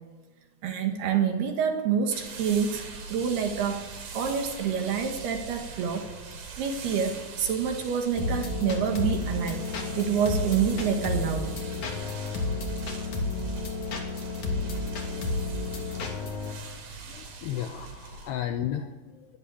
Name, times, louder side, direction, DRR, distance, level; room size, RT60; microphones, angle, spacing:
voice 1, 0.6-9.6 10.0-11.6, right 7 dB, 60° right, 5 dB, 3.2 m, -28 dB
sound 1, 2.1-18.3, right 5 dB, 45° right, 3.9 m, -42 dB
sound 2, 8.2-16.5, left 2 dB, 45° left, 3.5 m, -31 dB
voice 2, 17.0-19.4, left 10 dB, 80° left, 7 dB, 2.4 m, -34 dB
22.5 x 15.5 x 8.5 m, 1.3 s
omnidirectional pair, 5.8 m